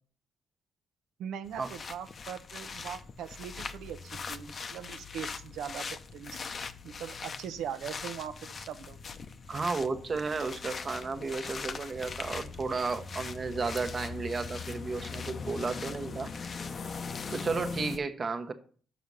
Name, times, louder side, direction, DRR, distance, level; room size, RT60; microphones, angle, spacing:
voice 1, 1.2-5.9 6.1-6.4 6.8-9.0, right 8 dB, 80° right, 11 dB, 0.8 m, -40 dB
sound 1, 1.4-18.0, left 5 dB, 45° left, 0.7 m, -40 dB
voice 2, 9.5-16.3 17.3-18.5, right 4 dB, 35° right, 8 dB, 1.0 m, -33 dB
6.1 x 6.1 x 5.4 m, 0.42 s
cardioid pair, 90°, 0 cm